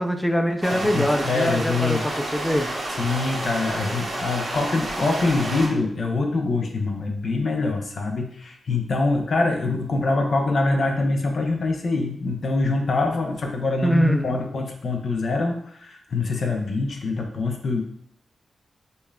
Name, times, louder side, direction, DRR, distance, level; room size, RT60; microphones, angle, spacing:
voice 1, 0.0-2.7 13.8-14.4, equal, 10° left, 5 dB, 0.4 m, -23 dB
sound 1, 0.6-5.7, right 1 dB, 70° right, 1.3 m, -30 dB
voice 2, 0.7-2.0 3.0-17.8, left 3 dB, 65° left, 2 dB, 0.6 m, -24 dB
5.3 x 2.2 x 2.3 m, 0.64 s
supercardioid pair, 45°, 0 cm